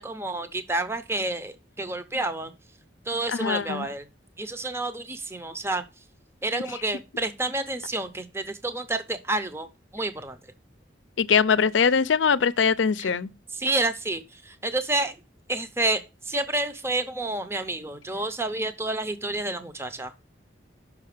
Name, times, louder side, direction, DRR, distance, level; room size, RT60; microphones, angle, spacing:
voice 1, 0.0-2.5 3.1-4.1 4.4-5.8 6.4-9.7 9.9-10.4 13.0-13.1 13.5-15.2 15.5-20.1, right 2 dB, 15° right, 0.6 m, -29 dB
voice 2, 3.3-3.9 11.2-13.3, left 6 dB, 85° left, 0.5 m, -22 dB
5.9 x 5.6 x 6.6 m
head